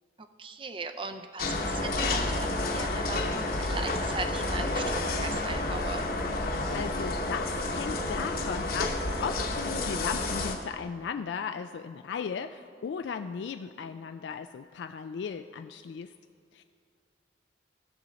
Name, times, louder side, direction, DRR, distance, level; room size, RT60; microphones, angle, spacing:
voice 1, 0.4-6.1, right 4 dB, 30° right, 9 dB, 0.5 m, -38 dB
sound 1, 1.4-10.6, left 2 dB, 50° left, 1.0 m, -30 dB
voice 2, 6.4-16.1 16.5-16.6, left 6 dB, 70° left, 8 dB, 0.3 m, -36 dB
18.0 x 6.9 x 4.0 m, 2.4 s
head